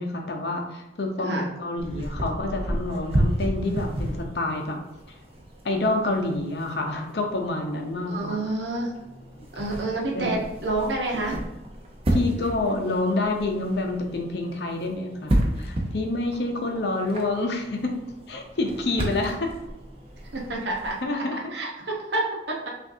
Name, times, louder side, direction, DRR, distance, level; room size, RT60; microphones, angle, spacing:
voice 1, 0.0-4.8 5.6-8.4 9.4-9.5 10.1-10.3 12.1-17.9 18.3-19.5 21.0-21.5, left 2 dB, 60° left, 2 dB, 0.7 m, -28 dB
sound 1, 1.8-21.1, right 1 dB, 30° right, 0.6 m, -32 dB
voice 2, 8.1-8.9 9.5-11.4 20.3-21.0 21.5-22.7, right 2 dB, 65° right, -1 dB, 1.0 m, -28 dB
5.7 x 2.6 x 2.7 m, 0.99 s
head